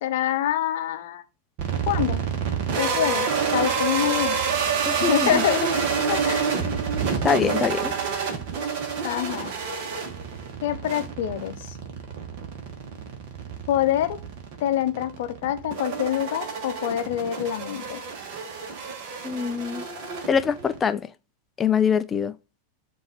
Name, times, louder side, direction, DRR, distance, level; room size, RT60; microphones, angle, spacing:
voice 1, 0.0-1.2 1.9-2.2 2.8-4.4 5.0-5.8 6.1-6.5 9.0-9.5 10.6-11.8 13.7-14.2 14.6-18.0, left 11 dB, 55° left, 0.7 m, -26 dB
sound 1, 1.6-20.8, right 6 dB, 45° right, 1.4 m, -28 dB
voice 2, 4.9-5.4 7.2-7.9 19.2-19.8 20.3-21.0 21.6-22.3, left 7 dB, 20° left, 0.5 m, -24 dB
7.7 x 2.7 x 5.7 m
figure-of-eight pair, 90°, 0 cm